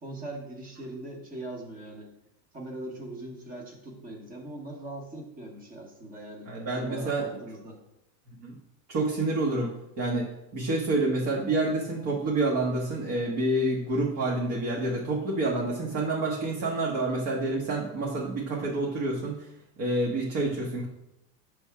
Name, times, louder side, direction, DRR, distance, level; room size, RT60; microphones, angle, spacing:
voice 1, 0.0-2.1 2.5-7.8, right 1 dB, 15° right, 0 dB, 1.1 m, -41 dB
voice 2, 6.5-7.2 8.4-8.5 8.9-9.7 10.0-19.5 19.8-20.8, right 2 dB, 40° right, -3 dB, 1.2 m, -28 dB
5.2 x 3.5 x 5.7 m, 0.85 s
supercardioid pair, 145°, 49 cm